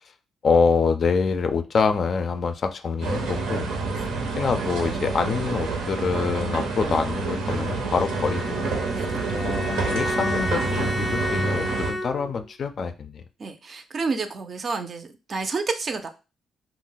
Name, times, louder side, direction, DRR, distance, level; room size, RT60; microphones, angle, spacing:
voice 1, 0.4-3.7 4.4-8.6 9.3-13.2, left 5 dB, 50° left, 0.3 m, -25 dB
sound 1, 3.0-11.9, right 4 dB, 90° right, 0.7 m, -28 dB
Bowed string instrument, 8.0-12.5, left 1 dB, 5° left, 0.6 m, -31 dB
voice 2, 13.4-16.1, right 4 dB, 45° right, 0.4 m, -30 dB
2.3 x 2.0 x 3.8 m
cardioid pair, 90°, 0 cm